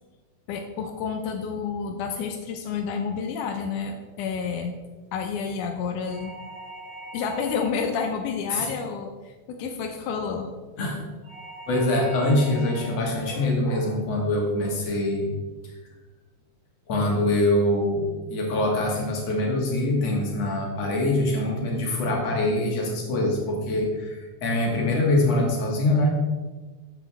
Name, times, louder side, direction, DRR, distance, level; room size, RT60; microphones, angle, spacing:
voice 1, 0.5-4.8 5.1-6.3 7.1-10.5, left 6 dB, 90° left, 4 dB, 2.3 m, -30 dB
sound 1, 6.0-8.0 11.2-13.0, right 1 dB, 85° right, 4.1 m, -41 dB
voice 2, 11.7-15.3 16.9-26.1, left 1 dB, 60° left, -1 dB, 3.1 m, -24 dB
12.5 x 8.3 x 3.6 m, 1.3 s
omnidirectional pair, 3.5 m